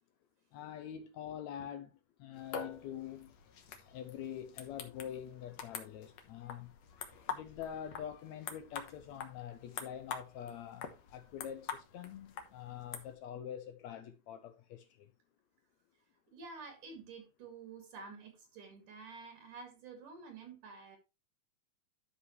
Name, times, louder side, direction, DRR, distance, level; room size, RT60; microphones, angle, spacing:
voice 1, 0.5-1.9 2.2-3.3 3.9-6.7 7.3-15.1, left 9 dB, 85° left, 1.6 m, -45 dB
sound 1, 2.3-13.1, left 7 dB, 60° left, 1.9 m, -46 dB
voice 2, 16.3-21.0, right 4 dB, 60° right, 3.5 m, -50 dB
13.0 x 5.4 x 3.1 m
omnidirectional pair, 4.1 m